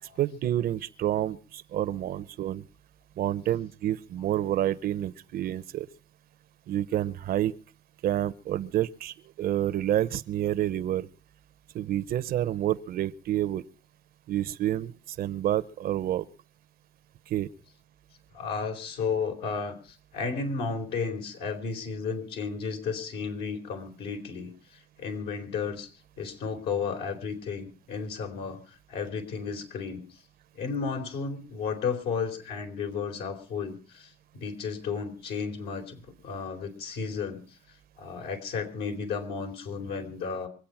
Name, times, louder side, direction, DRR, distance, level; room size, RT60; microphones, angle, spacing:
voice 1, 0.2-2.6 3.2-5.9 6.7-7.5 8.0-11.1 11.7-13.7 14.3-16.3 17.3-17.5, right 12 dB, 60° right, 17 dB, 0.9 m, -28 dB
voice 2, 18.3-24.5 25.0-25.9 26.2-30.0 30.5-37.4 38.0-40.5, left 5 dB, 80° left, 3 dB, 4.2 m, -33 dB
24.5 x 8.5 x 5.8 m, 0.39 s
cardioid pair, 110°, 17 cm